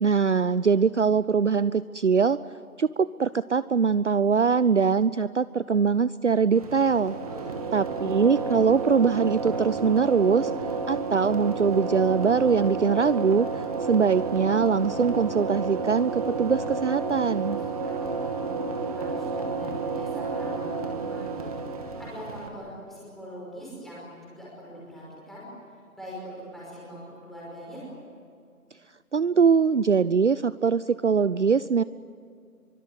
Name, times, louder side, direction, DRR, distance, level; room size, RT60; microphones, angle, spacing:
voice 1, 0.0-2.4 2.8-7.2 7.7-10.5 10.9-17.6 29.1-31.8, right 5 dB, 55° right, 16 dB, 0.6 m, -22 dB
sound 1, 6.5-22.5, right 4 dB, 25° right, 2.2 m, -31 dB
voice 2, 7.3-8.3 17.5-18.4 18.7-21.5 21.8-25.5 25.9-27.8, equal, ahead, -7 dB, 5.3 m, -42 dB
24.5 x 24.0 x 9.9 m, 2.3 s
figure-of-eight pair, 160°, 44 cm